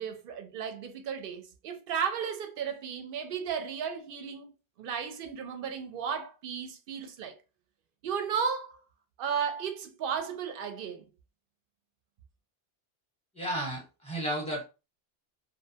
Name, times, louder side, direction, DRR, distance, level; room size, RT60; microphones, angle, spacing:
voice 1, 0.0-4.5 4.8-7.4 8.0-8.8 9.2-11.0, right 7 dB, 60° right, 0.6 m, -34 dB
voice 2, 13.3-14.6, right 1 dB, 5° left, 0.9 m, -33 dB
2.4 x 2.2 x 2.7 m
omnidirectional pair, 1.2 m